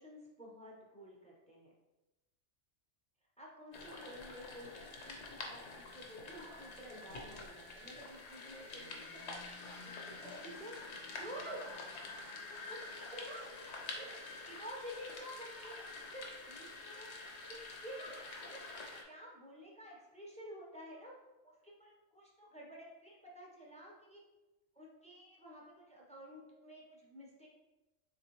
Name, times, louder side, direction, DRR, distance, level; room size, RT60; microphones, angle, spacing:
voice 1, 0.0-1.7 3.4-9.5 9.8-10.8 11.1-11.6 12.7-13.5 13.9-14.1 14.5-17.1 17.5-18.2 18.4-18.6 19.0-21.1 21.4-24.2 24.7-27.5, equal, 5° left, -3 dB, 0.5 m, -51 dB
sound 1, 3.7-19.0, left 3 dB, 60° left, 0.9 m, -47 dB
4.1 x 3.6 x 3.0 m, 1.0 s
omnidirectional pair, 1.4 m